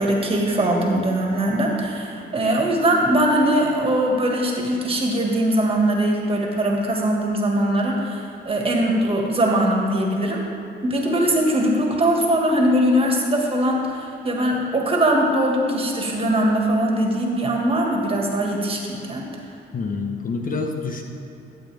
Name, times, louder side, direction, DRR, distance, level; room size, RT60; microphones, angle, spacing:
voice 1, 0.0-10.4 10.8-19.2, right 1 dB, 30° right, 0 dB, 1.8 m, -21 dB
voice 2, 19.7-21.0, left 4 dB, 45° left, 3 dB, 0.9 m, -27 dB
12.5 x 8.0 x 3.5 m, 2.9 s
cardioid pair, 90°, 20 cm